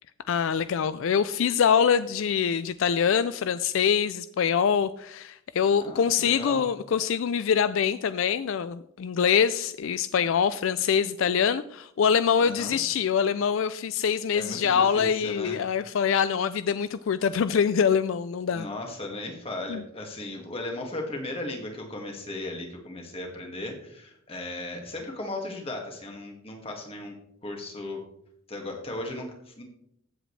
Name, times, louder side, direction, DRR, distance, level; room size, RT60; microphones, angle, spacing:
voice 1, 0.3-18.7 19.7-19.8, left 7 dB, 70° left, 14 dB, 0.4 m, -24 dB
voice 2, 5.8-6.7 12.4-12.8 14.3-15.6 18.5-27.2 27.4-28.0 28.5-29.6, left 1 dB, 25° left, 2 dB, 2.0 m, -36 dB
15.0 x 7.9 x 3.2 m, 0.73 s
head